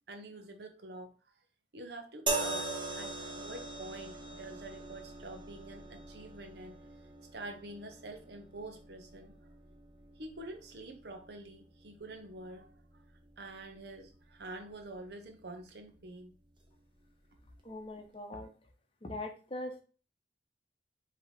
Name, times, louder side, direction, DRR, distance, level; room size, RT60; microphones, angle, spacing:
voice 1, 0.1-1.1 1.7-6.8 7.3-9.5 10.2-13.0 13.4-16.3, right 2 dB, 70° right, 4 dB, 0.9 m, -47 dB
sound 1, 2.3-15.6 16.5-16.7, right 2 dB, 25° right, 0.7 m, -42 dB
voice 2, 17.6-18.5 19.0-19.8, left 1 dB, 30° left, 4 dB, 0.7 m, -41 dB
5.2 x 2.9 x 3.2 m, 0.36 s
head